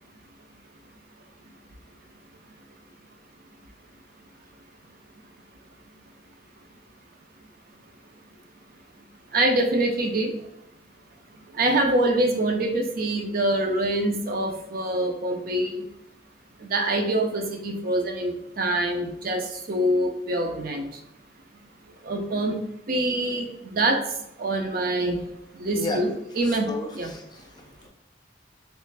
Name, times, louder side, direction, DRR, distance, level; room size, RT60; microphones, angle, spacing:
voice 1, 9.3-10.5 11.3-15.9 16.6-21.0 22.0-25.2 25.5-27.1, right 1 dB, 50° right, 4 dB, 0.4 m, -25 dB
voice 2, 26.4-27.9, left 2 dB, 25° left, 1 dB, 0.5 m, -34 dB
3.1 x 2.4 x 3.2 m, 0.81 s
head